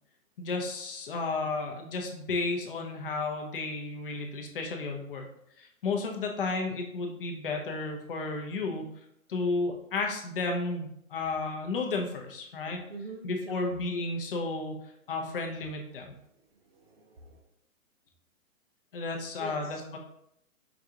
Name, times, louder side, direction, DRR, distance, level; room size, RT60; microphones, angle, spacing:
voice 1, 0.4-5.2 5.6-8.9 9.3-12.8 13.2-14.8 15.1-16.1 18.9-20.0, left 3 dB, 40° left, 2 dB, 0.6 m, -33 dB
voice 2, 12.9-13.7 16.7-17.4 19.4-19.8, right 3 dB, 45° right, 5 dB, 0.4 m, -45 dB
4.8 x 2.4 x 2.7 m, 0.76 s
hypercardioid pair, 155°, 42 cm